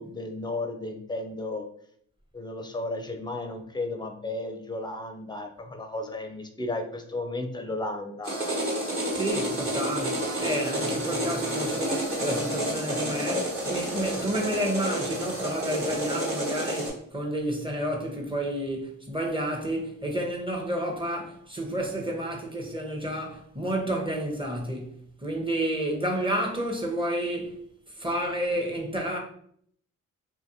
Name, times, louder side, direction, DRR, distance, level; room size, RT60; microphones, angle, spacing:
voice 1, 0.0-1.6 2.3-8.4, left 2 dB, 15° left, 0.5 m, -34 dB
sound 1, 8.2-16.9, right 1 dB, 40° right, 1.4 m, -30 dB
voice 2, 9.1-24.9 25.2-27.7 27.9-29.2, right 1 dB, 15° right, 0.8 m, -30 dB
2.6 x 2.5 x 2.7 m
cardioid pair, 55°, 33 cm